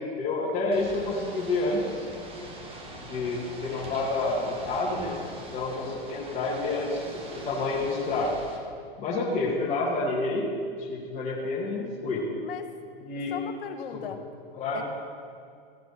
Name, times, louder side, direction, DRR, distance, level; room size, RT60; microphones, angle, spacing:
voice 1, 0.0-2.1 3.0-5.2 5.5-8.3 9.0-10.5 10.8-12.2 13.1-13.3 13.9-14.0 14.6-14.8, left 3 dB, 25° left, -6 dB, 2.4 m, -29 dB
Ocean / Boat Water vehicle, 0.7-8.6, right 1 dB, 20° right, 1.7 m, -42 dB
voice 2, 13.3-14.2 14.7-14.8, left 8 dB, 65° left, 8 dB, 1.3 m, -36 dB
16.5 x 7.6 x 4.3 m, 2.2 s
hypercardioid pair, 115°, 29 cm